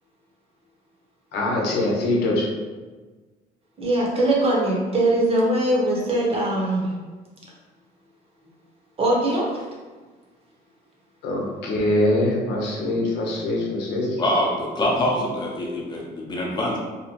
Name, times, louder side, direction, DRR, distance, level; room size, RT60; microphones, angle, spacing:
voice 1, 1.3-2.5 11.2-14.2, left 1 dB, 80° left, -2 dB, 0.7 m, -23 dB
voice 2, 3.8-6.9 9.0-9.6, right 1 dB, 35° right, -4 dB, 0.9 m, -21 dB
voice 3, 14.2-16.8, left 1 dB, 25° left, -3 dB, 0.7 m, -24 dB
2.8 x 2.1 x 2.8 m, 1.3 s
cardioid pair, 110°, 17 cm